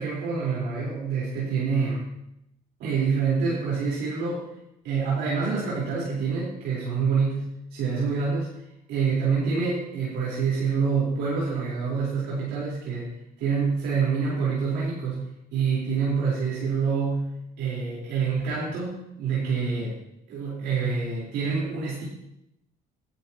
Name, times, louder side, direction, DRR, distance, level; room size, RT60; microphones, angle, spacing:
voice 1, 0.0-2.1 2.8-4.5 4.8-8.5 8.9-13.1 13.4-15.2 15.5-20.0 20.3-22.0, right 5 dB, 85° right, -6 dB, 4.3 m, -26 dB
17.0 x 12.0 x 3.0 m, 0.83 s
cardioid pair, 110°, 17 cm